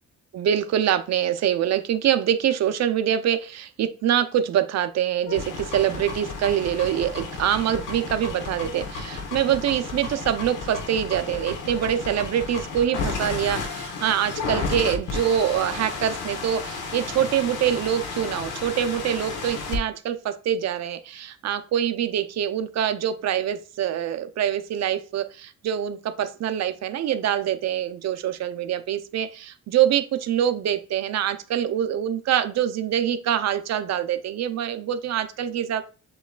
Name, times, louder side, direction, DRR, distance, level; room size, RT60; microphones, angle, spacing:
voice 1, 0.3-35.8, right 10 dB, 60° right, 10 dB, 0.6 m, -25 dB
sound 1, 5.3-19.8, left 4 dB, 85° left, 1.2 m, -33 dB
6.8 x 3.0 x 2.4 m, 0.35 s
cardioid pair, 90°, 30 cm